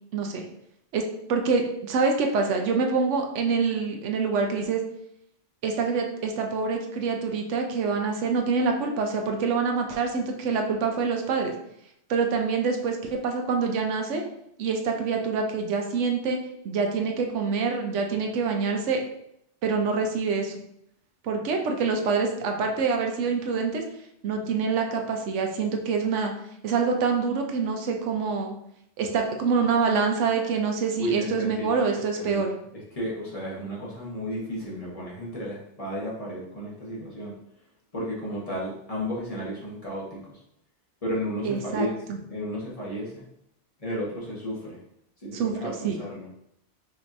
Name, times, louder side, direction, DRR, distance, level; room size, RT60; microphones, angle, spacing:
voice 1, 0.1-0.4 0.9-1.0 1.3-4.8 5.6-11.5 12.1-14.2 14.6-19.0 19.6-20.5 21.2-23.8 24.2-26.3 26.6-28.5 29.0-32.5 41.4-41.9 45.3-46.0, right 5 dB, 80° right, 3 dB, 0.9 m, -26 dB
voice 2, 30.9-31.7 32.1-37.3 37.9-40.4 41.0-43.2 43.8-44.8 45.2-46.3, equal, 30° left, -6 dB, 1.1 m, -33 dB
5.1 x 2.9 x 2.6 m, 0.77 s
omnidirectional pair, 1.2 m